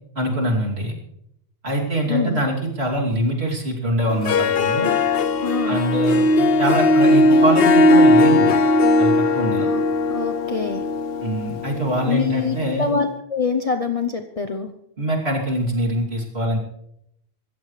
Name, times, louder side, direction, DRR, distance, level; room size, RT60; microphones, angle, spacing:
voice 1, 0.1-0.9 1.6-4.9 5.7-8.5 9.0-9.7 11.2-12.9 15.0-16.6, right 1 dB, 70° right, -2 dB, 3.3 m, -23 dB
voice 2, 2.1-2.4 5.4-5.8 9.6-9.8 10.1-10.8 12.1-14.7, left 5 dB, 35° left, 6 dB, 0.8 m, -24 dB
Harp, 4.1-12.7, left 2 dB, 65° left, 0.9 m, -18 dB
25.0 x 14.0 x 3.3 m, 0.77 s
omnidirectional pair, 1.1 m